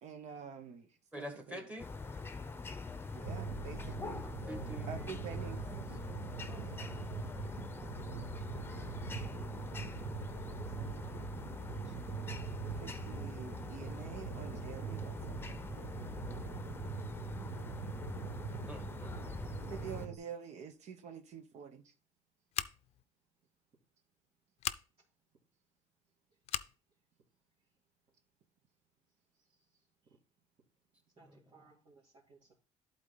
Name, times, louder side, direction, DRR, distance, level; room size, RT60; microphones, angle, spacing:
voice 1, 0.0-1.7 3.1-4.3 4.9-5.7 11.8-11.9 12.6-15.5 19.7-21.9, right 7 dB, 65° right, 1.0 m, -47 dB
voice 2, 1.1-1.9 4.2-5.8 6.5-7.4 18.7-19.5 31.2-31.6, equal, 10° right, 1.8 m, -50 dB
sound 1, 1.8-20.1, left 4 dB, 20° left, 0.7 m, -44 dB
sound 2, 3.2-20.2, right 7 dB, 85° right, 1.3 m, -43 dB
voice 3, 10.4-11.2 31.2-32.6, right 2 dB, 50° right, 2.5 m, -60 dB
Scissors, 22.5-23.0 24.6-24.8 26.4-26.7, left 12 dB, 60° left, 0.5 m, -37 dB
11.5 x 4.0 x 4.0 m
cardioid pair, 130°, 12 cm